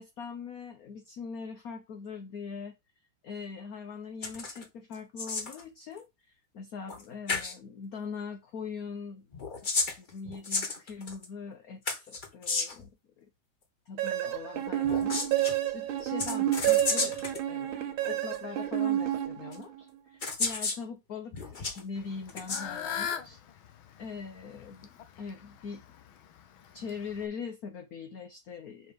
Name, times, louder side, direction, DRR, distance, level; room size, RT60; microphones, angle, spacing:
voice 1, 0.0-2.8 3.2-9.3 9.6-13.3 13.9-17.2 17.5-23.4 24.0-25.8 26.7-28.9, left 5 dB, 55° left, 1.1 m, -42 dB
sound 1, 4.2-4.6 4.9-5.6 6.9-7.0 7.3-7.6 9.3-11.3 11.9-12.9 14.8-15.5 16.2-17.4 18.3-18.4 19.5-19.6 20.2-20.8 21.3-21.8 22.3-22.6, left 4 dB, 35° left, 0.9 m, -32 dB
sound 2, 14.0-19.8, right 12 dB, 75° right, 1.8 m, -29 dB
Fowl / Bird, 22.0-27.3, left 8 dB, 75° left, 1.7 m, -40 dB
5.2 x 5.2 x 5.2 m
omnidirectional pair, 2.3 m